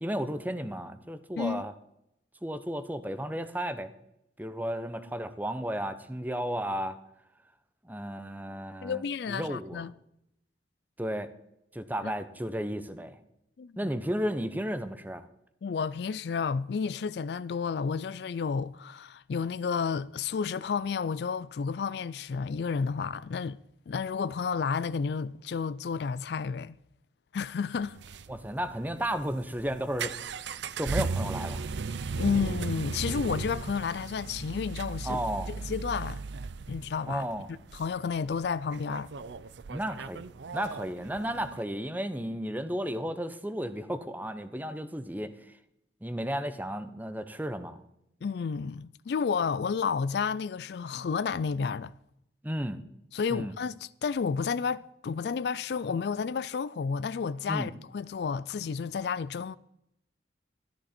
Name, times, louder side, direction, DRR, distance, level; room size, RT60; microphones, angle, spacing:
voice 1, 0.0-1.7 2.4-3.9 4.4-7.0 7.8-9.9 11.0-11.3 11.7-13.2 13.8-15.3 28.3-30.2 30.8-31.6 35.0-35.5 37.1-37.5 39.7-40.2 40.5-45.6 46.0-47.8 52.4-52.8 53.3-53.5 57.5-57.7, equal, 10° right, 0.7 m, -33 dB
voice 2, 8.8-9.9 12.0-12.1 13.6-13.8 15.6-23.6 23.9-26.8 27.3-28.0 32.1-35.2 35.5-36.2 36.7-37.3 37.7-39.1 48.2-51.9 53.1-59.6, left 5 dB, 60° left, 0.4 m, -31 dB
sound 1, 27.8-41.6, right 4 dB, 70° right, 0.5 m, -37 dB
13.5 x 12.5 x 4.3 m
head